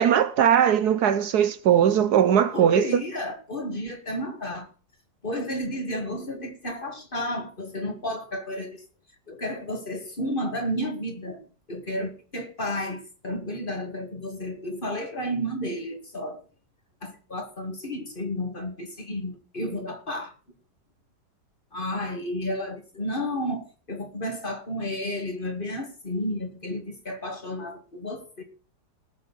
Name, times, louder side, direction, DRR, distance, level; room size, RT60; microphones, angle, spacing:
voice 1, 0.0-2.8, right 9 dB, 70° right, 1.2 m, -20 dB
voice 2, 2.5-4.7 5.2-8.8 9.3-11.4 11.7-16.4 17.0-20.3 21.7-28.4, left 1 dB, 30° left, 2.2 m, -32 dB
19.5 x 6.6 x 4.1 m
omnidirectional pair, 1.9 m